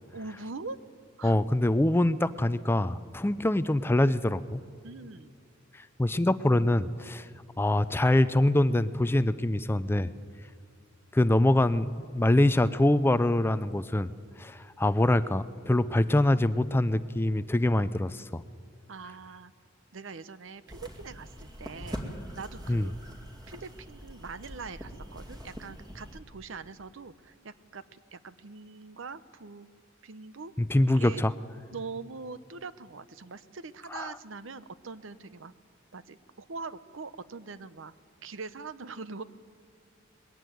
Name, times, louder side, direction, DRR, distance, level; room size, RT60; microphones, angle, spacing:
voice 1, 0.1-0.8 1.2-1.4 4.8-5.3 18.9-19.5 19.9-22.9 23.5-29.7 30.0-30.5 30.8-31.2 31.7-35.5 35.9-37.9 38.2-39.2, right 4 dB, 70° right, 14 dB, 0.8 m, -42 dB
voice 2, 1.2-4.6 6.0-7.3 7.6-10.1 11.1-14.1 14.4-18.4 22.7-22.9 30.6-31.3 33.9-34.2, left 1 dB, 10° left, 14 dB, 0.4 m, -24 dB
sound 1, 20.7-26.2, equal, 20° right, 2.4 m, -43 dB
21.5 x 15.5 x 9.3 m, 2.4 s
head